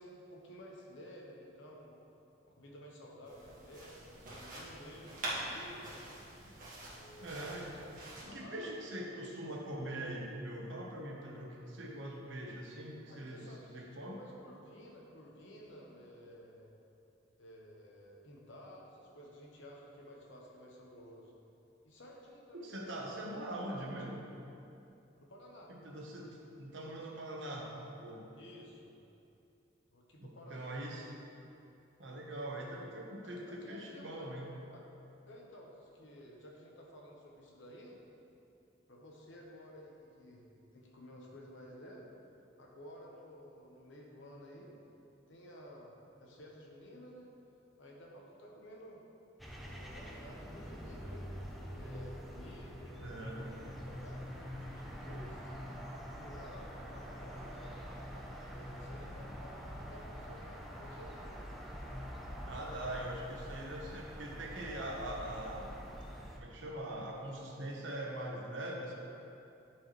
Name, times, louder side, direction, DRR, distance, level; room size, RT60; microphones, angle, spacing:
voice 1, 0.0-1.9 2.4-6.1 6.9-7.7 8.3-9.0 13.1-16.7 17.4-21.3 21.8-24.2 25.2-25.7 28.3-28.9 29.9-30.7 33.2-34.3 34.7-34.8 35.3-38.0 38.9-42.1 42.6-44.7 45.3-47.3 47.8-49.0 49.6-51.4 51.7-55.6 56.1-57.8 58.4-61.4, equal, 70° left, -2 dB, 1.0 m, -53 dB
sound 1, 3.3-8.2, right 1 dB, 45° right, 1.7 m, -45 dB
voice 2, 7.2-7.7 8.0-13.4 13.7-14.2 22.6-24.2 25.7-26.3 26.6-28.3 30.2-31.1 32.0-34.5 53.0-53.4 62.5-65.7 66.4-68.9, right 1 dB, 70° right, -1 dB, 1.1 m, -42 dB
sound 2, 49.4-66.4, equal, ahead, 0.6 m, -45 dB
10.0 x 4.6 x 3.1 m, 2.7 s
head